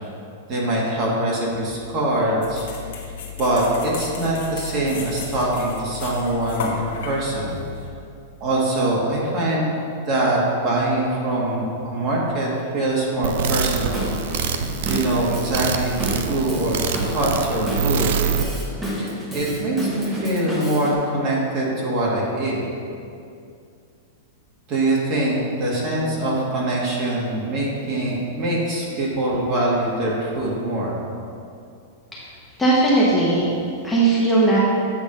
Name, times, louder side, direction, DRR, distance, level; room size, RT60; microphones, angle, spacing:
voice 1, 0.5-2.7 3.4-7.6 8.4-9.8 10.0-14.0 14.9-18.2 19.0-22.6 24.7-31.0, right 1 dB, 35° right, -4 dB, 1.8 m, -23 dB
sound 1, 2.4-7.9, left 6 dB, 70° left, 1.2 m, -34 dB
sound 2, 13.2-18.4, right 7 dB, 65° right, 0.5 m, -26 dB
Drum kit / Drum, 13.4-20.9, equal, 10° right, 1.2 m, -30 dB
voice 2, 32.6-33.5 33.8-34.6, right 2 dB, 5° left, -7 dB, 1.1 m, -18 dB
8.3 x 3.5 x 5.4 m, 2.5 s
supercardioid pair, 145°, 0 cm